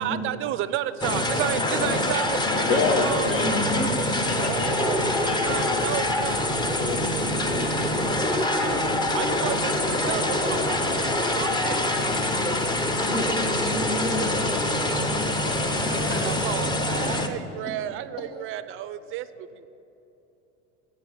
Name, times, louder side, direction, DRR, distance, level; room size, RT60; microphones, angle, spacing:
voice 1, 0.0-3.4 4.4-6.4 8.3-8.9 9.1-11.8 15.9-19.7, right 12 dB, 35° right, 14 dB, 0.4 m, -32 dB
sound 1, 1.0-17.3, left 1 dB, 10° left, 0.6 m, -25 dB
voice 2, 2.6-5.9 6.7-7.7, left 3 dB, 65° left, 4 dB, 1.3 m, -29 dB
voice 3, 3.4-3.9 13.1-15.1 15.6-16.5 17.7-17.8, equal, 85° left, 0 dB, 1.7 m, -31 dB
7.5 x 5.4 x 7.4 m, 2.9 s
hypercardioid pair, 80°, 37 cm